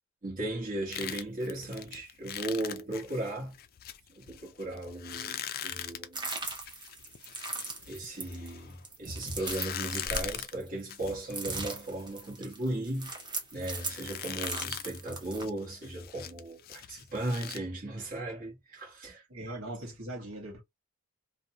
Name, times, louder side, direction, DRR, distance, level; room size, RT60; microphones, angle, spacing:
voice 1, 0.2-3.6 4.2-6.2 7.9-13.2 13.5-19.6, right 1 dB, 40° right, 1.1 m, -36 dB
sound 1, 0.9-8.8 9.3-17.6, left 10 dB, 45° left, 0.4 m, -42 dB
sound 2, 6.1-11.0 11.3-15.4, right 3 dB, 20° right, 0.7 m, -39 dB
voice 2, 19.3-20.6, right 1 dB, 65° right, 1.3 m, -40 dB
2.6 x 2.2 x 2.8 m
head